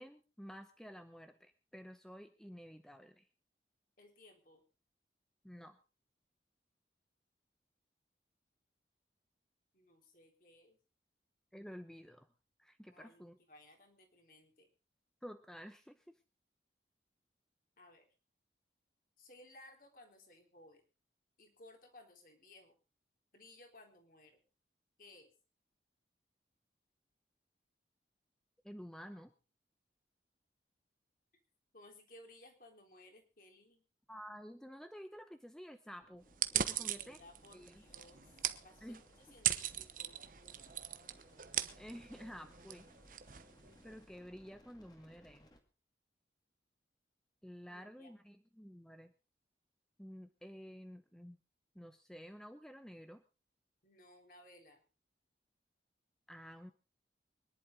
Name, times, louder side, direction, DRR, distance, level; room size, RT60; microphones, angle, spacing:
voice 1, 0.0-3.3 5.4-5.8 11.5-12.3 12.6-13.4 15.2-16.1 28.6-29.3 34.1-36.3 36.5-37.2 37.5-37.8 38.8-39.0 41.8-42.9 43.8-45.5 47.4-49.1 50.0-51.4 51.7-53.2 56.3-56.7, equal, 5° left, 8 dB, 0.9 m, -51 dB
voice 2, 4.0-4.6 9.7-10.8 12.9-14.7 17.8-18.1 19.2-20.8 21.4-22.8 23.3-24.4 25.0-25.3 31.7-33.8 36.6-40.2 47.7-48.1 53.8-54.8, left 1 dB, 50° left, 3 dB, 3.8 m, -60 dB
sound 1, 36.0-45.6, equal, 25° left, 2.3 m, -65 dB
sound 2, 36.3-44.0, right 10 dB, 50° right, 1.0 m, -40 dB
24.5 x 11.0 x 3.8 m, 0.32 s
head